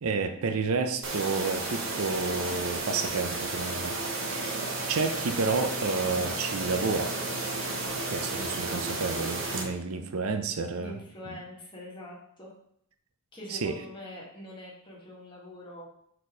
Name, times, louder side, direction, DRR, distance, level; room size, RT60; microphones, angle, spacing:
voice 1, 0.0-4.0 4.3-4.5 4.9-7.1 8.1-10.9 11.3-11.4 13.5-13.7, right 4 dB, 85° right, 7 dB, 0.6 m, -30 dB
sound 1, 1.0-9.6, right 2 dB, 60° right, 0.9 m, -32 dB
voice 2, 10.7-12.5 13.3-15.9, left 1 dB, 25° left, -4 dB, 1.7 m, -44 dB
4.4 x 4.2 x 5.0 m, 0.70 s
head